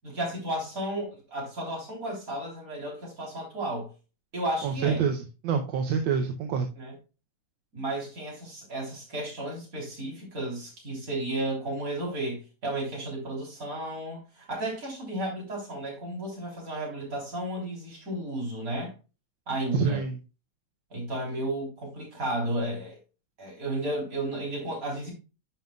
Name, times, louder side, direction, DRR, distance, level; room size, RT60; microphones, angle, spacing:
voice 1, 0.0-3.9 4.3-5.1 6.8-6.9 7.7-18.9 19.5-20.0 20.9-23.0 23.4-25.1, right 1 dB, 45° right, 3.8 m, -33 dB
voice 2, 4.6-6.7 19.7-20.2, right 6 dB, 80° right, 1.5 m, -27 dB
10.5 x 5.3 x 2.3 m
omnidirectional pair, 2.1 m